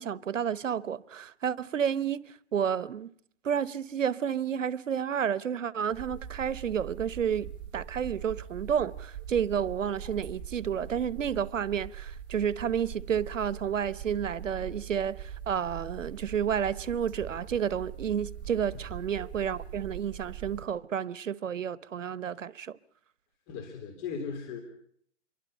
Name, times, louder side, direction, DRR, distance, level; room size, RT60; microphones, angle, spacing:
voice 1, 0.0-2.2 2.5-3.1 3.4-22.8, right 8 dB, 80° right, 1.1 m, -31 dB
sound 1, 5.9-20.7, right 9 dB, 10° right, 0.9 m, -42 dB
voice 2, 23.5-24.6, left 6 dB, 25° left, 3.3 m, -37 dB
28.0 x 23.5 x 5.5 m
hypercardioid pair, 155°, 37 cm